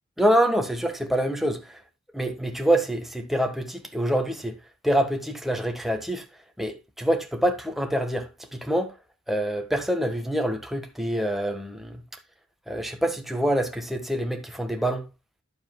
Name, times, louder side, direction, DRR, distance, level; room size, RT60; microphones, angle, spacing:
voice 1, 0.2-1.8 2.1-4.5 4.8-6.2 6.6-8.9 9.3-12.0 12.7-15.0, right 1 dB, ahead, 1.4 m, -26 dB
11.5 x 8.5 x 2.3 m
head